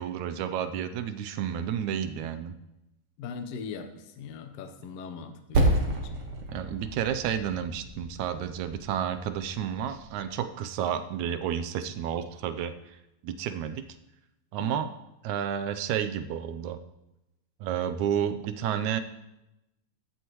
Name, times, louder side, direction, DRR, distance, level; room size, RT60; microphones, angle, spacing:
voice 1, 0.0-2.6 6.5-12.7 13.2-13.8 14.5-14.9 15.2-16.8 17.6-19.0, right 9 dB, 80° right, 10 dB, 2.1 m, -31 dB
voice 2, 3.2-6.2 14.6-14.9, left 5 dB, 65° left, 7 dB, 1.8 m, -40 dB
Percussion, 5.5-10.4, right 2 dB, 55° right, 2.3 m, -30 dB
14.0 x 11.5 x 3.1 m, 0.92 s
omnidirectional pair, 3.5 m